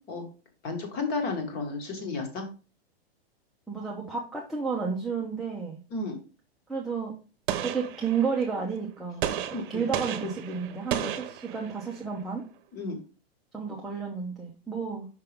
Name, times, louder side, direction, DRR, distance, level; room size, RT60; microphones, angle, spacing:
voice 1, 0.6-2.5 5.9-6.2 9.5-9.8 12.7-13.0, left 3 dB, 30° left, 5 dB, 1.7 m, -32 dB
voice 2, 3.7-5.8 6.7-7.2 7.6-12.4 13.5-15.1, right 5 dB, ahead, -3 dB, 0.6 m, -32 dB
Gunshot gunfire, 7.5-8.5 9.2-12.0, right 10 dB, 55° right, 0.9 m, -33 dB
5.8 x 5.6 x 3.5 m, 0.35 s
hypercardioid pair, 150°, 31 cm